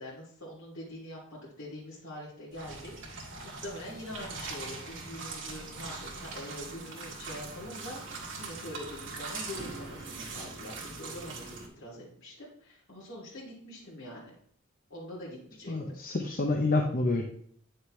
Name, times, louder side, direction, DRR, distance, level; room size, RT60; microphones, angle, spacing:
voice 1, 0.0-14.3 14.9-15.9, left 1 dB, 85° left, -8 dB, 2.7 m, -44 dB
sound 1, 2.5-11.7, right 3 dB, 70° right, 2.0 m, -41 dB
voice 2, 15.7-17.2, left 2 dB, 45° left, 2 dB, 0.7 m, -28 dB
9.3 x 6.6 x 3.2 m, 0.64 s
head